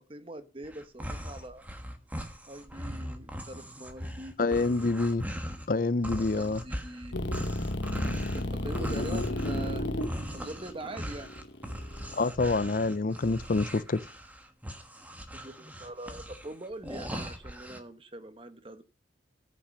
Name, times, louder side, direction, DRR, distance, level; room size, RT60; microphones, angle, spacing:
voice 1, 0.0-1.6 2.5-4.9 6.2-7.2 8.3-9.9 10.3-11.3 15.3-18.8, right 1 dB, 30° right, 1.1 m, -43 dB
sound 1, 0.6-5.7 6.0-17.8, equal, 10° right, 1.3 m, -40 dB
voice 2, 4.4-5.2 5.7-6.6 9.0-9.2 12.1-14.0, left 3 dB, 45° left, 0.5 m, -27 dB
sound 2, 7.1-12.3, left 1 dB, 70° left, 1.2 m, -33 dB
14.0 x 5.9 x 6.5 m
head